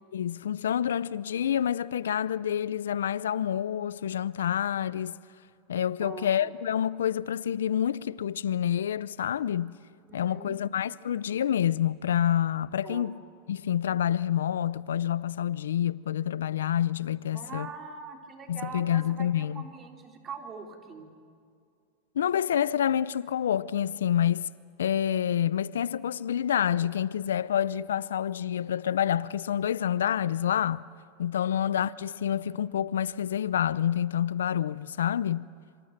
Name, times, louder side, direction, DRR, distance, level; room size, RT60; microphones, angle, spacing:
voice 1, 0.1-5.2 5.7-9.7 10.1-13.2 13.5-17.7 18.5-19.7 22.2-24.5 24.8-30.8 31.2-35.5, left 10 dB, 85° left, 0.5 m, -28 dB
voice 2, 6.0-6.5 10.1-10.6 12.8-13.1 17.3-21.1 31.4-31.6, right 5 dB, 30° right, 3.8 m, -43 dB
26.5 x 25.0 x 6.7 m
hypercardioid pair, 105°, 0 cm